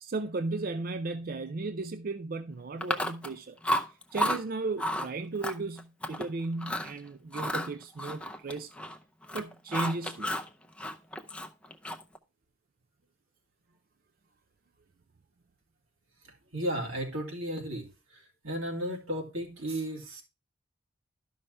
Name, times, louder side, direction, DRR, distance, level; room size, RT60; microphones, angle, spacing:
voice 1, 0.0-3.6 4.1-8.7 9.3-10.4, right 3 dB, 45° right, 0.4 m, -35 dB
Chewing mastication, 2.8-3.4 3.6-4.4 4.8-5.1 5.4-6.3 6.6-6.9 7.3-9.0 9.2-10.5 10.8-12.2, equal, 5° left, 0.6 m, -32 dB
voice 2, 16.5-17.9 18.1-20.2, equal, 80° right, 2.8 m, -34 dB
12.5 x 5.5 x 3.3 m
head